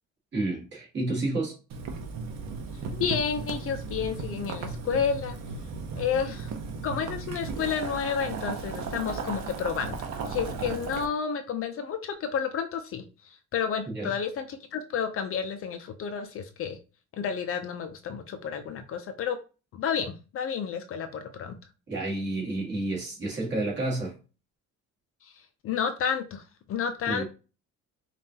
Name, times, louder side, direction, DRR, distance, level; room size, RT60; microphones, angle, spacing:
voice 1, 0.3-1.5 13.9-14.1 21.9-24.1 27.1-27.2, right 2 dB, 35° right, 1.8 m, -30 dB
Boiling, 1.7-11.0, right 4 dB, 60° right, 0.8 m, -36 dB
voice 2, 2.9-5.4 6.0-6.5 6.8-16.8 17.1-19.4 19.7-21.6 25.2-25.3 25.6-26.4 26.7-27.2, left 7 dB, 45° left, 0.5 m, -31 dB
5.4 x 2.5 x 2.8 m
cardioid pair, 150°, 32 cm